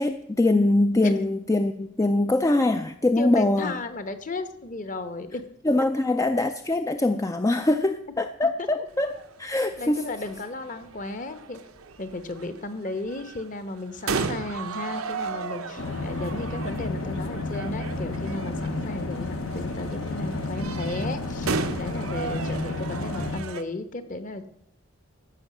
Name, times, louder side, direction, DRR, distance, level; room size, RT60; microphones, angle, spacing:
voice 1, 0.0-3.8 5.6-10.0, left 2 dB, 15° left, 8 dB, 0.3 m, -23 dB
voice 2, 3.2-5.4 8.6-8.7 9.8-11.6 12.0-21.5 21.8-24.5, left 2 dB, 40° left, 10 dB, 1.0 m, -34 dB
sound 1, 8.9-23.6, right 4 dB, 90° right, 0.9 m, -36 dB
sound 2, 15.8-23.4, left 2 dB, 70° left, 0.9 m, -31 dB
14.0 x 5.6 x 7.2 m, 0.72 s
head